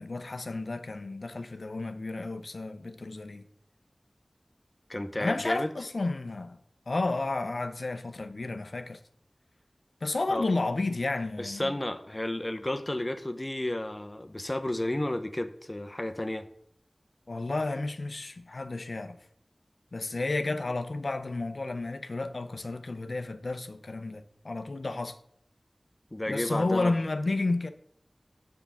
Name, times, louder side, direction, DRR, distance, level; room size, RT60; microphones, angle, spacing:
voice 1, 0.0-3.4 5.2-6.6 6.9-9.0 10.0-11.7 17.3-19.2 19.9-25.1 26.3-27.7, left 2 dB, 80° left, 0.6 m, -32 dB
voice 2, 4.9-5.7 10.3-10.4 11.4-16.4 26.1-26.9, left 1 dB, 30° left, 0.7 m, -32 dB
7.4 x 6.8 x 3.5 m
wide cardioid pair, 55°, 0 cm